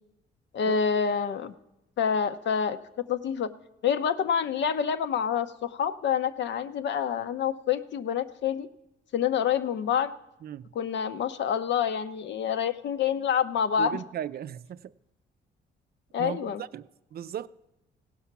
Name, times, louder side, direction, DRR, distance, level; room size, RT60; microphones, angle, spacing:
voice 1, 0.5-1.5 2.0-2.8 3.1-3.5 3.8-8.7 9.1-10.1 10.7-14.0 16.1-16.6, left 7 dB, 65° left, 0.7 m, -27 dB
voice 2, 13.8-14.9 16.2-17.5, right 10 dB, 50° right, 0.4 m, -37 dB
16.5 x 5.7 x 5.9 m
cardioid pair, 90°, 20 cm